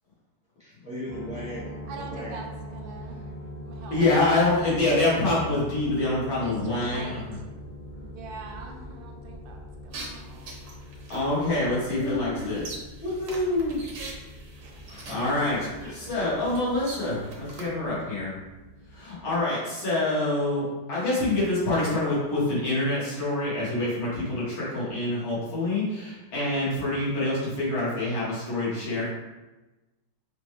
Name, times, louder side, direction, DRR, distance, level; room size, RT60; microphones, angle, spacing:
voice 1, 0.6-2.4 2.9-3.1 14.6-17.6, equal, 5° right, -8 dB, 0.7 m, -41 dB
sound 1, 1.1-19.4, equal, 40° left, 1.0 m, -42 dB
voice 2, 1.9-4.1 6.0-7.3 8.0-10.5 14.6-14.7, right 4 dB, 80° right, 2 dB, 1.3 m, -43 dB
voice 3, 3.9-7.4 11.1-12.8 13.0-13.8 15.1-15.6 15.9-18.3 18.9-29.1, left 2 dB, 80° left, -8 dB, 2.3 m, -26 dB
sound 2, 9.9-17.7, left 1 dB, 65° right, 1.0 m, -40 dB
4.9 x 2.2 x 3.1 m, 1.1 s
omnidirectional pair, 2.1 m